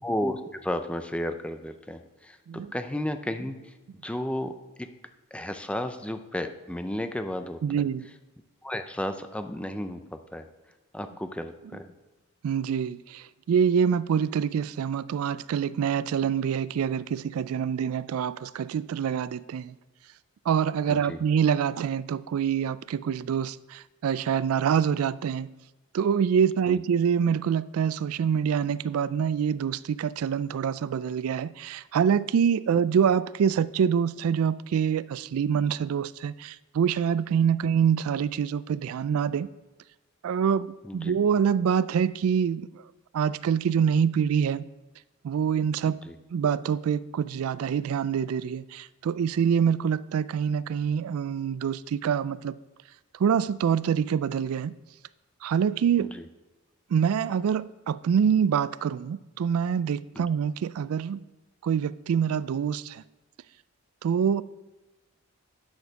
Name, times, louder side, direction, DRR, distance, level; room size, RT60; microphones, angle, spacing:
voice 1, 0.0-3.7 4.0-4.9 5.3-7.8 8.6-10.5 10.9-11.9 20.9-21.2 26.7-26.8 40.8-41.2 46.0-46.2 56.0-56.3 60.2-60.3, left 1 dB, 5° left, 0.5 m, -33 dB
voice 2, 7.6-8.1 12.4-19.8 20.5-25.5 25.9-39.5 40.2-42.7 43.1-44.6 45.2-46.0 46.3-52.6 53.2-54.7 55.4-56.1 56.9-61.2 61.6-63.0 64.0-64.4, right 7 dB, 85° right, 0.3 m, -25 dB
9.5 x 6.4 x 5.9 m
head